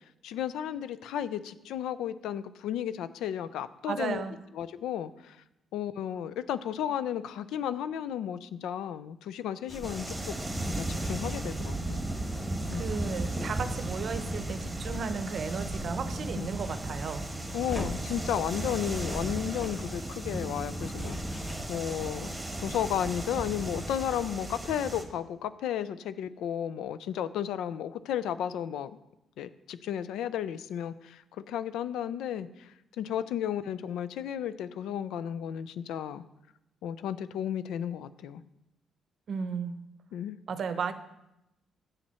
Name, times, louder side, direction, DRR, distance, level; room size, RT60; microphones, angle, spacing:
voice 1, 0.2-4.2 4.6-5.4 5.7-10.4 10.7-12.0 12.7-12.9 16.3-16.5 17.5-21.4 21.7-22.4 22.6-28.9 29.4-31.2 31.5-32.5 33.0-36.2 36.8-38.4 40.1-40.4, left 10 dB, 85° left, 14 dB, 0.3 m, -33 dB
voice 2, 3.9-4.4 12.7-17.3 39.3-39.8 40.5-40.9, right 5 dB, 55° right, 11 dB, 0.6 m, -34 dB
sound 1, 9.7-24.3, left 1 dB, 20° left, 1.2 m, -45 dB
sound 2, 9.8-25.0, right 1 dB, 15° right, 1.1 m, -35 dB
7.4 x 6.4 x 4.3 m, 0.89 s
cardioid pair, 90°, 0 cm